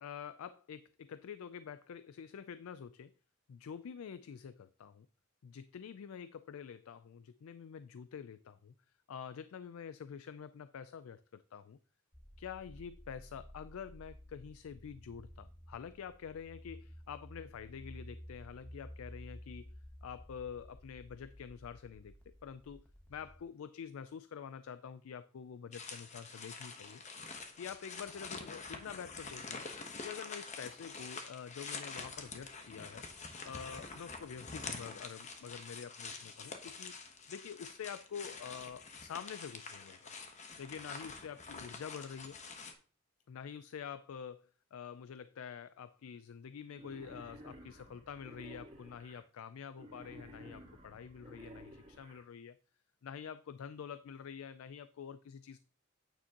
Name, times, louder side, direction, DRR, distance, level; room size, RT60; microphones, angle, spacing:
voice 1, 0.0-3.1 3.5-5.1 5.4-8.7 9.1-11.8 12.4-27.0 27.6-29.7 30.0-33.1 33.4-36.9 37.3-40.1 40.6-42.4 43.3-44.4 44.7-52.6 53.0-55.6, left 7 dB, 85° left, 0.4 m, -47 dB
sound 1, 12.1-23.4, equal, 5° left, 1.0 m, -53 dB
sound 2, 25.7-42.7, left 4 dB, 35° left, 1.0 m, -47 dB
Wild animals, 46.7-49.2 49.7-52.2, equal, 25° right, 2.4 m, -53 dB
9.0 x 7.0 x 2.9 m
head